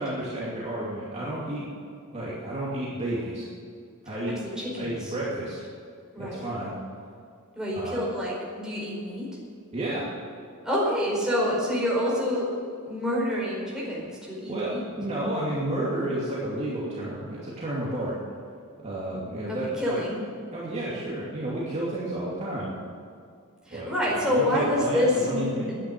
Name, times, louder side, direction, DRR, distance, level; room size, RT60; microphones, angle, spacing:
voice 1, 0.0-1.7 2.1-3.5 4.0-4.4 4.8-5.7 6.2-6.8 7.8-8.0 9.7-10.1 14.5-18.2 18.8-20.0 20.5-22.7 23.7-25.7, right 1 dB, 30° right, -7 dB, 2.7 m, -31 dB
voice 2, 4.1-5.1 6.1-6.4 7.5-9.3 10.6-12.5 12.8-14.8 19.5-20.2 23.6-25.8, left 1 dB, 5° right, -6 dB, 4.7 m, -27 dB
10.5 x 10.0 x 9.8 m, 2.3 s
head